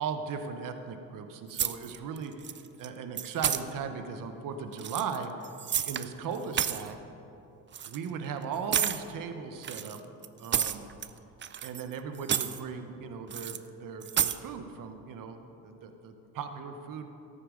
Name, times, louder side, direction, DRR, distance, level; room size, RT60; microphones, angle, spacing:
voice 1, 0.0-2.4 2.8-5.3 5.9-7.0 7.8-10.0 10.4-10.9 11.6-17.0, right 6 dB, 65° right, 7 dB, 1.0 m, -37 dB
sound 1, 1.5-2.2 2.4-2.9 3.2-3.6 4.7-6.1 6.3-6.9 7.7-8.0 8.7-9.0 9.6-11.1 11.4-11.9 12.2-12.6 13.3-13.6 14.0-14.4, right 9 dB, 35° right, 0.5 m, -30 dB
13.5 x 8.7 x 5.2 m, 2.8 s
cardioid pair, 95°, 36 cm